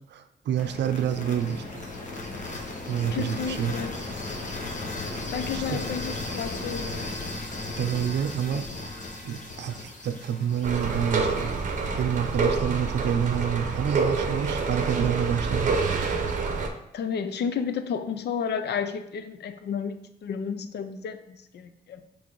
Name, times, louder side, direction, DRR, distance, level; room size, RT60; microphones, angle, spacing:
voice 1, 0.1-1.8 2.9-3.7 5.5-5.8 7.8-8.7 9.2-11.7 12.0-15.8, right 9 dB, 80° right, 10 dB, 0.5 m, -28 dB
sound 1, 0.5-12.5, left 2 dB, 45° left, 1.1 m, -36 dB
voice 2, 3.1-4.0 5.3-7.1 16.9-20.0 20.2-22.0, left 6 dB, 70° left, 9 dB, 0.6 m, -32 dB
sound 2, 10.6-16.7, right 4 dB, 45° right, 0.7 m, -27 dB
6.2 x 3.5 x 4.6 m, 0.78 s
wide cardioid pair, 140°, 18 cm